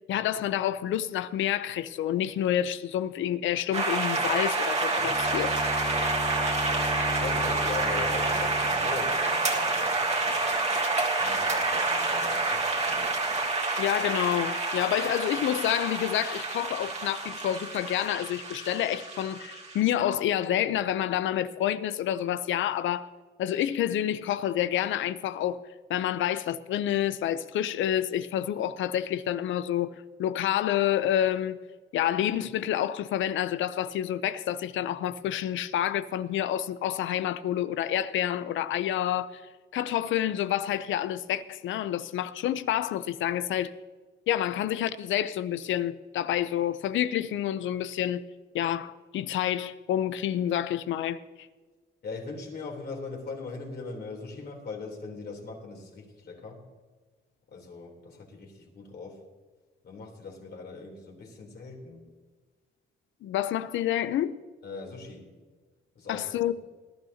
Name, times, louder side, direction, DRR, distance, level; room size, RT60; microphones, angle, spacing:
voice 1, 0.1-5.5 13.8-23.1 23.4-25.6 25.9-31.6 31.9-39.4 39.7-43.7 44.3-48.2 48.5-51.5 63.2-64.4 66.1-66.5, left 11 dB, 75° left, 0.6 m, -28 dB
sound 1, 3.7-19.8, right 3 dB, 35° right, 1.8 m, -28 dB
Bowed string instrument, 5.0-9.9, left 3 dB, 5° left, 2.5 m, -37 dB
voice 2, 7.1-10.5 11.2-12.7 16.2-16.3 52.0-56.6 57.5-59.2 59.8-62.1 64.6-65.3 66.0-66.5, left 4 dB, 55° left, 3.5 m, -40 dB
20.0 x 12.0 x 2.9 m
cardioid pair, 90°, 20 cm